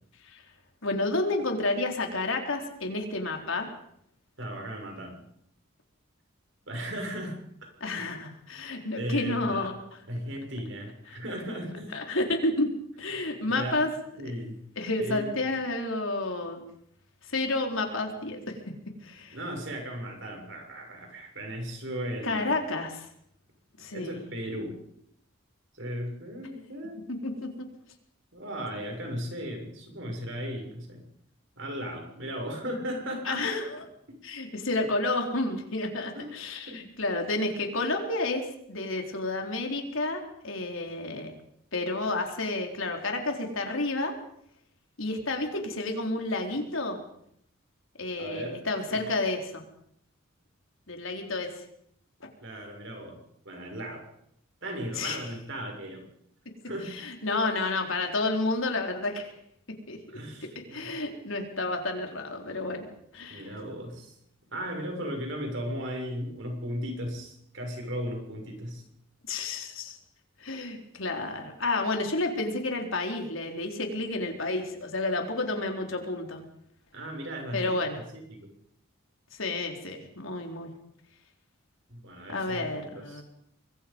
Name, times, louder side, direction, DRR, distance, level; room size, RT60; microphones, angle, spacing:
voice 1, 0.8-3.7 7.8-9.7 11.1-11.2 11.9-12.7 13.0-13.9 14.2-14.3 14.8-16.6 17.2-18.5 19.0-19.4 22.2-23.1 23.8-24.2 27.2-27.7 33.3-33.7 34.2-41.3 41.7-44.1 45.0-47.0 48.0-49.6 50.9-51.5 54.9-55.2 56.9-59.3 59.9-60.0 60.7-62.9 63.1-63.5 69.3-70.0 70.4-76.4 77.5-78.0 79.3-80.7 82.3-83.2, left 2 dB, 75° left, 3 dB, 4.3 m, -30 dB
voice 2, 4.4-5.2 6.7-8.1 9.0-9.7 10.1-12.0 13.4-13.8 14.2-14.6 15.0-15.5 19.3-22.6 23.9-24.8 25.7-27.0 28.3-31.0 31.5-33.4 36.1-36.3 36.7-36.8 48.2-49.1 52.4-53.2 53.4-54.0 54.6-56.1 56.6-57.0 60.1-60.9 63.3-64.2 64.5-68.8 76.9-78.5 81.9-83.2, equal, 60° right, 3 dB, 6.8 m, -36 dB
25.5 x 22.0 x 5.5 m, 0.72 s
head